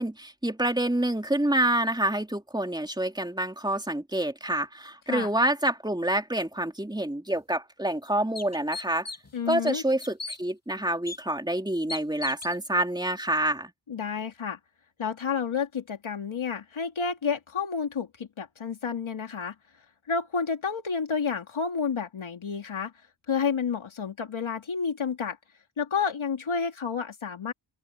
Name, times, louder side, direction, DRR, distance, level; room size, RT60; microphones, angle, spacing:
voice 1, 0.0-9.1 9.5-13.7, right 1 dB, 10° right, 3.1 m, -27 dB
sound 1, 7.3-7.4 7.9-8.0 8.3-9.3 9.7-10.4 11.1-11.2 11.9-12.6, left 3 dB, 30° left, 2.6 m, -37 dB
voice 2, 9.3-9.8 13.9-14.6 15.0-19.5 20.1-22.9 23.3-25.4 25.8-27.5, left 6 dB, 85° left, 2.4 m, -30 dB
open air
wide cardioid pair, 100°, 47 cm